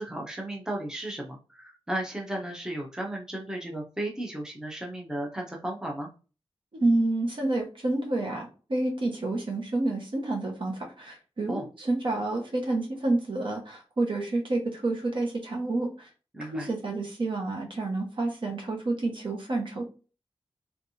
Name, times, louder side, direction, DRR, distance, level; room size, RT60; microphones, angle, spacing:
voice 1, 0.0-6.1 11.5-11.6 16.3-16.7, right 1 dB, 5° right, -1 dB, 0.9 m, -34 dB
voice 2, 6.7-16.1 16.4-19.8, right 2 dB, 55° right, 1 dB, 1.2 m, -29 dB
3.4 x 3.3 x 2.7 m, 0.34 s
wide cardioid pair, 100°, 10 cm